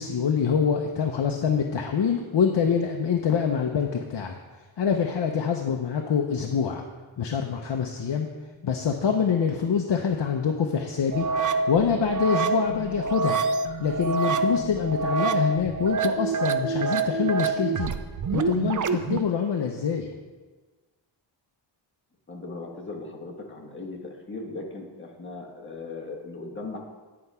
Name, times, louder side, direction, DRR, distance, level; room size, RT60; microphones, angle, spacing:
voice 1, 0.0-4.3 4.8-6.8 7.2-8.3 8.6-11.3 11.7-13.4 13.8-17.9 18.3-20.1, left 6 dB, 60° left, 3 dB, 0.7 m, -25 dB
sound 1, 11.1-19.2, right 4 dB, 45° right, 0.4 m, -26 dB
voice 2, 22.3-26.8, left 3 dB, 25° left, -2 dB, 1.4 m, -38 dB
10.0 x 4.7 x 5.5 m, 1.3 s
wide cardioid pair, 130°, 47 cm